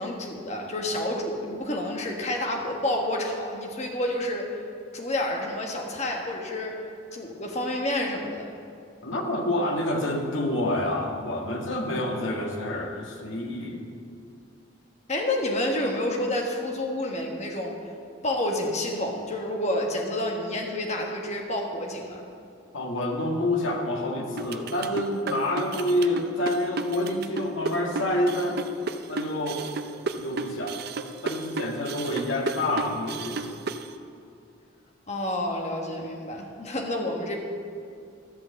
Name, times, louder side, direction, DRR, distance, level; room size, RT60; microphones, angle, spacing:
voice 1, 0.0-4.6 4.9-6.8 7.1-8.5 15.1-17.8 18.2-22.3 35.1-37.4, left 1 dB, 35° left, 1 dB, 1.4 m, -29 dB
voice 2, 9.0-13.9 22.7-28.6 29.1-29.6 30.1-30.8 31.2-33.6, left 1 dB, 75° left, 1 dB, 1.6 m, -28 dB
sound 1, 24.4-33.9, right 4 dB, 50° right, 0.5 m, -33 dB
12.5 x 5.8 x 7.7 m, 2.4 s
head